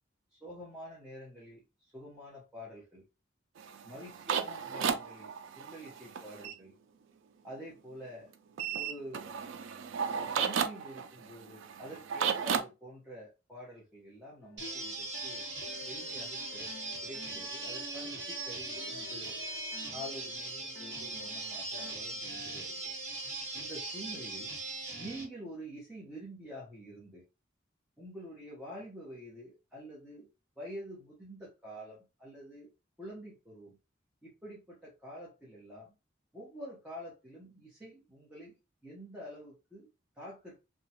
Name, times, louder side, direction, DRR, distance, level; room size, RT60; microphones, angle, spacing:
voice 1, 0.3-3.0 3.8-6.7 7.4-8.3 8.7-9.3 10.1-15.5 15.7-16.7 17.0-19.4 19.9-22.9 23.5-24.5 25.0-27.2 28.0-30.3 30.6-32.7 33.0-33.8 34.2-35.9 36.3-39.9 40.2-40.6, equal, 5° right, -7 dB, 0.9 m, -47 dB
sound 1, 3.6-6.5 8.6-12.6, right 7 dB, 80° right, 0.4 m, -34 dB
sound 2, 14.4-22.0, left 3 dB, 65° left, 0.4 m, -52 dB
sound 3, 14.6-25.3, right 2 dB, 65° right, 1.2 m, -40 dB
2.9 x 2.3 x 2.8 m, 0.28 s
head